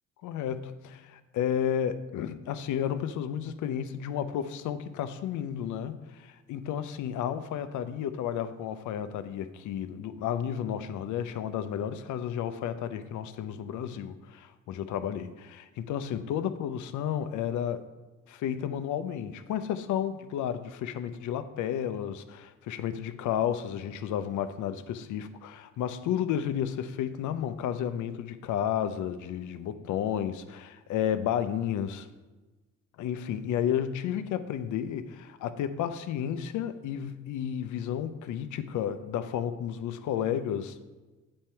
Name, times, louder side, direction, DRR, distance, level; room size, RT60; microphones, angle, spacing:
voice 1, 0.2-17.8 18.3-32.1 33.0-40.8, left 9 dB, 80° left, 11 dB, 0.6 m, -32 dB
7.6 x 4.3 x 4.5 m, 1.2 s
cardioid pair, 90°, 30 cm